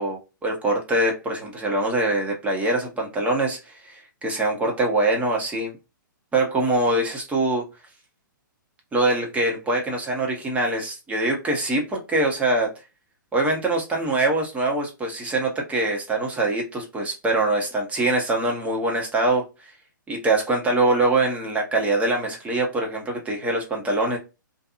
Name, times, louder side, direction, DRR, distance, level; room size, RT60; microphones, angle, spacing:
voice 1, 0.0-5.7 6.3-7.7 8.9-12.7 13.3-19.7 20.1-24.2, right 2 dB, 10° right, 0 dB, 0.9 m, -23 dB
2.6 x 2.6 x 2.4 m, 0.28 s
figure-of-eight pair, 120°, 11 cm